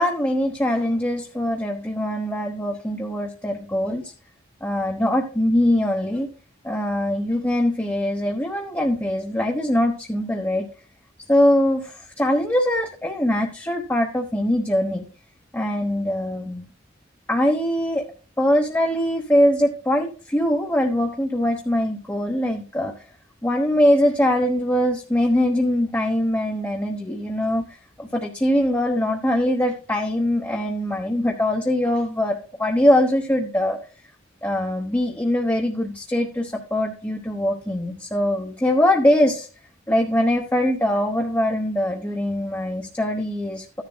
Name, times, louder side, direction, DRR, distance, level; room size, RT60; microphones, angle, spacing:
voice 1, 0.0-4.1 4.6-6.3 6.6-10.7 11.3-15.0 15.5-16.7 17.3-18.1 18.4-22.9 23.4-33.8 34.4-39.5 39.9-43.8, left 1 dB, 10° left, 0 dB, 1.2 m, -22 dB
14.0 x 10.5 x 2.3 m, 0.37 s
head